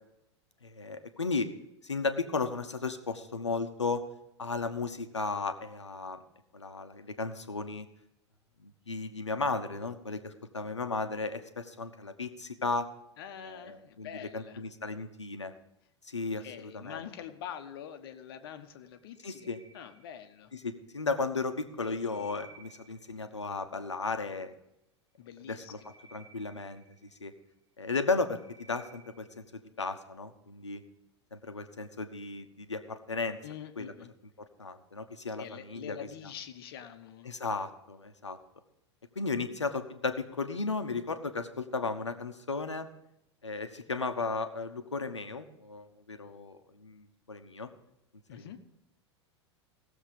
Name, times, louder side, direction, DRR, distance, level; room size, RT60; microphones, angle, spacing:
voice 1, 0.6-1.5 1.8-4.0 4.4-6.2 6.5-7.9 8.6-12.9 13.4-15.5 16.0-17.0 19.2-19.6 20.6-24.5 25.5-25.8 26.1-26.8 27.2-27.3 27.8-29.4 29.8-30.8 31.3-33.4 33.8-33.9 34.6-36.0 37.2-38.4 39.1-42.9 43.4-47.7 48.3-48.5, left 3 dB, 80° left, 8 dB, 1.1 m, -35 dB
voice 2, 13.2-14.6 16.4-19.5 19.7-20.5 25.2-25.9 33.4-34.1 35.4-37.3 48.3-48.6, left 9 dB, 55° left, 9 dB, 1.2 m, -45 dB
sound 1, 18.9-20.6 21.5-23.4 25.3-27.4 27.9-29.5, right 4 dB, 80° right, 2.5 m, -58 dB
17.0 x 7.2 x 5.2 m, 0.86 s
figure-of-eight pair, 90°, 15 cm